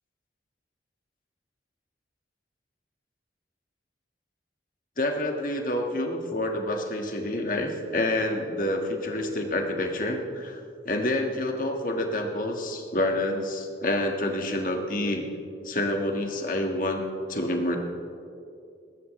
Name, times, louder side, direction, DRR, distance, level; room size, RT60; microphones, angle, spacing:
voice 1, 5.0-15.2 15.6-17.0 17.3-17.8, left 1 dB, 45° left, 3 dB, 1.6 m, -28 dB
20.0 x 17.5 x 3.2 m, 2.5 s
head